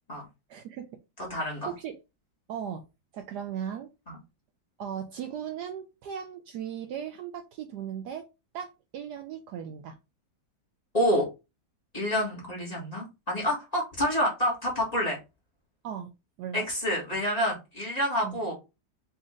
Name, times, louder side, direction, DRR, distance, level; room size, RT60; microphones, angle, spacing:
voice 1, 0.5-0.8 1.7-2.0 2.5-2.8 3.1-3.9 4.8-8.3 8.5-10.0 15.8-16.1 16.4-16.7 18.2-18.4, right 8 dB, 75° right, 6 dB, 1.0 m, -37 dB
voice 2, 1.2-1.7 4.1-4.2 10.9-11.2 11.9-15.2 16.5-18.5, equal, 20° left, -3 dB, 1.5 m, -28 dB
4.2 x 2.8 x 3.6 m, 0.26 s
omnidirectional pair, 2.1 m